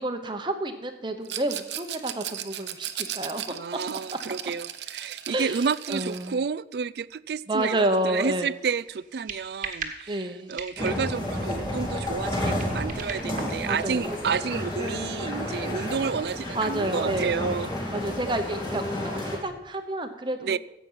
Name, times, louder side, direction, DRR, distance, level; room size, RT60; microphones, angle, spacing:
voice 1, 0.0-3.4 5.3-6.4 7.5-8.5 10.1-10.6 13.7-14.4 16.5-17.5 17.9-20.6, right 1 dB, 25° right, 7 dB, 1.0 m, -30 dB
Rattle, 1.2-6.3, right 11 dB, 85° right, 0.9 m, -36 dB
voice 2, 3.5-17.7 20.4-20.6, right 5 dB, 65° right, 19 dB, 0.4 m, -30 dB
sound 1, 7.9-15.5, right 5 dB, 45° right, 1.4 m, -42 dB
sound 2, 10.8-19.4, left 1 dB, 25° left, 3.1 m, -31 dB
15.0 x 8.4 x 5.7 m, 0.93 s
head